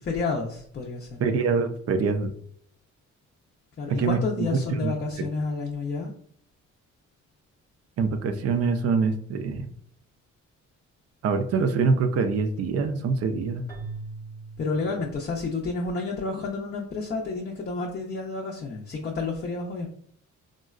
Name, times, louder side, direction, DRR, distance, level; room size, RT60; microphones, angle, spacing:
voice 1, 0.1-1.2 3.8-6.1 14.6-19.9, left 3 dB, 35° left, -1 dB, 0.5 m, -30 dB
voice 2, 1.2-2.3 3.9-4.9 5.2-5.3 8.0-9.7 11.2-13.6, right 4 dB, 55° right, 8 dB, 0.4 m, -25 dB
Keyboard (musical), 13.7-15.9, right 3 dB, 10° left, 0.9 m, -41 dB
3.7 x 2.1 x 2.4 m, 0.62 s
cardioid pair, 90°, 30 cm